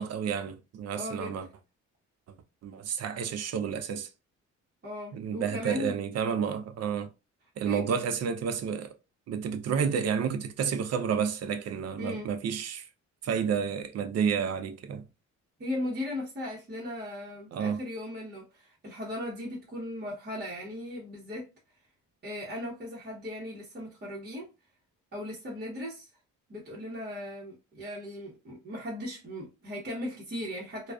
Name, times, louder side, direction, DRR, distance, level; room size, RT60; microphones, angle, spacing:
voice 1, 0.0-1.5 2.6-4.1 5.1-7.1 7.6-8.9 9.3-12.9 13.2-15.0 17.5-17.8, right 7 dB, 55° right, 0.5 m, -30 dB
voice 2, 0.9-1.4 4.8-6.0 7.6-7.8 12.0-12.3 15.6-21.5 22.2-24.5 25.1-26.1 26.5-30.9, left 1 dB, 35° right, 1.0 m, -37 dB
2.3 x 2.3 x 2.3 m
cardioid pair, 90°, 30 cm